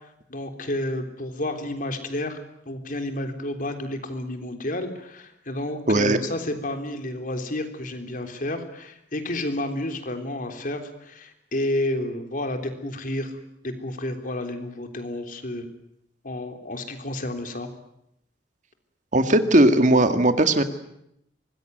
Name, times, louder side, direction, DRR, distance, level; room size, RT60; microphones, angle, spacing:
voice 1, 0.3-2.4 2.7-13.3 13.6-15.7 16.2-17.7, left 1 dB, 50° left, 6 dB, 3.5 m, -30 dB
voice 2, 5.9-6.2 19.1-20.6, right 1 dB, 45° right, 8 dB, 2.0 m, -18 dB
25.0 x 21.0 x 9.4 m, 0.78 s
head